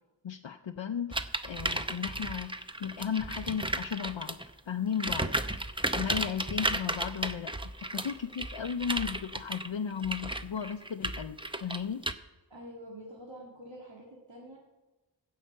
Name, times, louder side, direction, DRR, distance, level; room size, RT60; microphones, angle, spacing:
voice 1, 0.2-1.1 1.4-4.4 4.7-5.3 5.9-12.0, left 7 dB, 80° left, 5 dB, 0.6 m, -35 dB
sound 1, 1.1-4.5 4.9-12.1, right 1 dB, 10° right, 0.6 m, -34 dB
voice 2, 12.5-14.6, equal, 80° right, -4 dB, 2.0 m, -47 dB
16.0 x 5.7 x 7.5 m, 1.1 s
wide cardioid pair, 55°, 44 cm